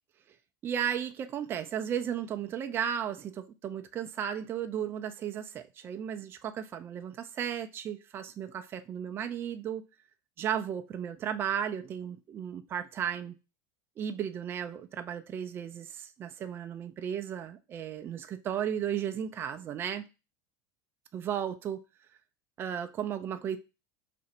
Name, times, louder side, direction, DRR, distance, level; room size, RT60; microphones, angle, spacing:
voice 1, 0.6-9.8 10.4-13.4 14.0-20.0 21.1-21.8 22.6-23.6, right 9 dB, 20° right, 0.3 m, -34 dB
2.6 x 2.5 x 4.0 m
supercardioid pair, 155°, 10 cm